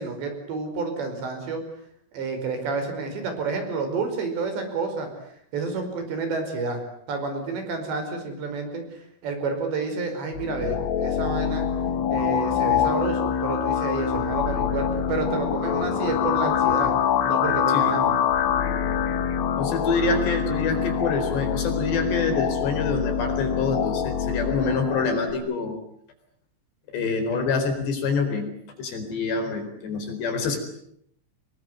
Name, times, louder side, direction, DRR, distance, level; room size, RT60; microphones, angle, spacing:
voice 1, 0.0-1.6 2.1-5.1 5.5-6.8 7.1-8.8 9.2-11.7 12.1-16.9 17.3-18.1, right 4 dB, 60° right, 6 dB, 7.1 m, -29 dB
sound 1, 10.3-25.3, left 8 dB, 85° left, 4.5 m, -25 dB
voice 2, 19.6-25.8 26.9-28.5 28.8-30.6, left 4 dB, 60° left, 6 dB, 6.2 m, -26 dB
26.5 x 22.0 x 9.5 m, 0.69 s
omnidirectional pair, 5.8 m